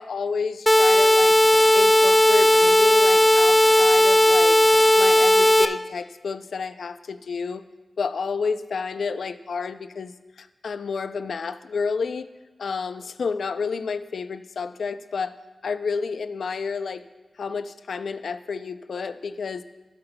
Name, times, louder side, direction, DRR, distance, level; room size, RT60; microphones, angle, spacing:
voice 1, 0.0-1.4 1.7-4.6 4.9-7.6 8.0-10.1 10.4-12.3 12.6-15.3 15.6-17.0 17.4-19.6, left 5 dB, 75° left, 11 dB, 0.4 m, -30 dB
sound 1, 0.7-5.7, left 1 dB, 5° left, 0.3 m, -16 dB
17.0 x 7.8 x 2.2 m, 1.2 s
wide cardioid pair, 130°, 0 cm